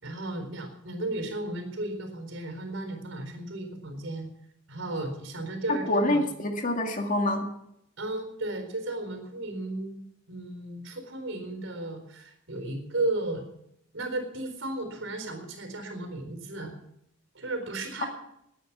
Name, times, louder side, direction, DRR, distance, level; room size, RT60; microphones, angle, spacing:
voice 1, 0.0-4.3 4.7-6.2 8.0-9.9 10.3-13.5 13.9-16.7 17.3-18.1, right 2 dB, 80° right, 6 dB, 4.2 m, -34 dB
voice 2, 5.7-7.5 18.0-18.1, left 1 dB, 40° left, 4 dB, 2.1 m, -26 dB
19.0 x 9.5 x 6.1 m, 0.77 s
head